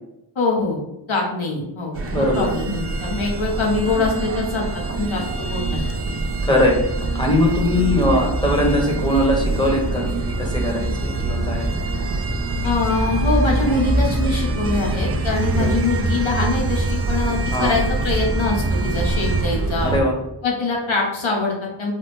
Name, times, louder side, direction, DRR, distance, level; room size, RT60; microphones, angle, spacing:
voice 1, 0.4-0.8 1.1-5.8 12.6-19.9 20.4-21.9, left 3 dB, 85° left, -1 dB, 0.9 m, -23 dB
sound 1, 1.9-20.0, right 2 dB, 35° right, 0.4 m, -24 dB
voice 2, 2.1-2.5 6.4-6.8 7.1-11.7 15.5-15.7 17.5-17.8 19.8-20.2, left 1 dB, 10° left, -1 dB, 0.8 m, -20 dB
3.2 x 2.0 x 3.2 m, 0.90 s
wide cardioid pair, 50°, 46 cm